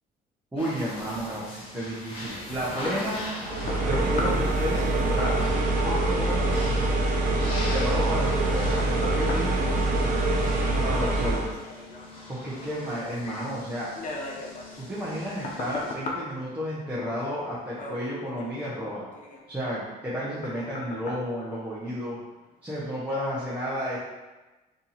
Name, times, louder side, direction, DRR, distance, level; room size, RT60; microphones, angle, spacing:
voice 1, 0.5-3.3 3.9-5.4 5.8-6.7 7.5-9.6 10.7-11.4 12.3-13.9 14.8-19.1 19.5-22.2 22.6-24.0, equal, 10° right, -8 dB, 0.8 m, -32 dB
sound 1, 0.6-15.9, left 1 dB, 30° left, 1.1 m, -41 dB
sound 2, 3.0-22.3 22.8-22.9, left 2 dB, 50° left, 0.6 m, -40 dB
sound 3, 3.4-11.5, right 2 dB, 50° right, 0.6 m, -25 dB
2.9 x 2.6 x 3.9 m, 1.1 s
cardioid pair, 110°, 17 cm